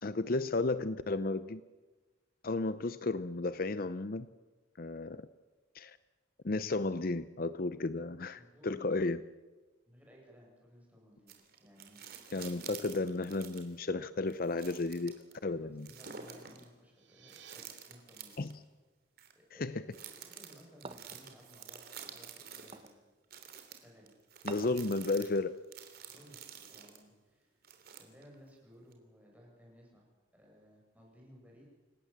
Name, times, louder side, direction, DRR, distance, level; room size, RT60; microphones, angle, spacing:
voice 1, 0.0-1.6 2.4-4.3 4.8-5.2 5.7-6.0 6.4-9.2 12.3-15.9 18.4-18.5 19.6-19.8 24.4-25.5, left 3 dB, 50° left, 14 dB, 0.6 m, -33 dB
voice 2, 8.3-8.7 9.9-11.3 11.6-12.3 15.4-18.5 19.3-23.0 23.8-24.1 26.1-26.4 26.7-27.6 28.0-30.0 30.3-31.6, equal, 10° right, -2 dB, 7.8 m, -59 dB
sound 1, 11.3-13.8 14.3-15.3 15.8-16.6 17.3-18.6 19.2-19.3 19.9-22.9 23.3-27.0 27.6-28.4 28.9-29.0, right 7 dB, 50° right, 3.2 m, -49 dB
sound 2, 16.8-17.6, right 9 dB, 75° right, 2.8 m, -57 dB
sound 3, 20.8-21.3 22.7-23.0 24.5-24.9, right 3 dB, 30° right, 0.9 m, -46 dB
28.0 x 18.0 x 7.4 m, 1.3 s
head